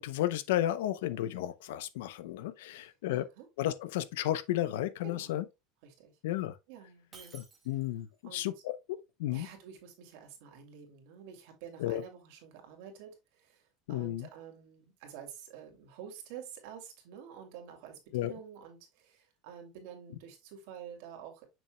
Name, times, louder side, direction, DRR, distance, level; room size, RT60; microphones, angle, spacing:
voice 1, 0.0-3.2 3.6-5.4 6.2-6.5 7.3-8.1 8.3-9.5 11.8-12.0 13.9-14.3 18.1-18.3, left 13 dB, 90° left, 0.7 m, -33 dB
voice 2, 2.7-3.5 5.0-5.5 5.8-6.1 6.7-7.3 8.2-8.5 9.3-21.5, right 8 dB, 70° right, 2.6 m, -49 dB
Shatter, 7.1-8.2, right 5 dB, 20° right, 1.8 m, -54 dB
7.1 x 6.2 x 2.2 m
supercardioid pair, 150°, 0 cm